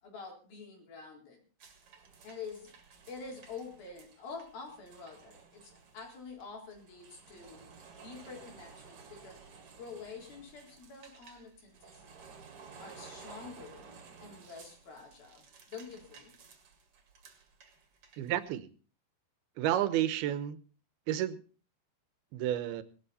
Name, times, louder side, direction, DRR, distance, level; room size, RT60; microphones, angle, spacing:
voice 1, 0.0-1.4 2.2-2.7 3.1-7.7 8.0-9.4 9.8-12.0 12.8-13.9 14.2-16.3, left 5 dB, 70° left, 0 dB, 5.6 m, -47 dB
sound 1, 1.6-18.5, right 5 dB, 45° right, 2.4 m, -55 dB
voice 2, 18.2-18.7 19.6-20.6 21.1-21.4 22.3-22.8, right 12 dB, 85° right, 14 dB, 2.9 m, -31 dB
18.5 x 12.5 x 4.2 m, 0.38 s
omnidirectional pair, 4.4 m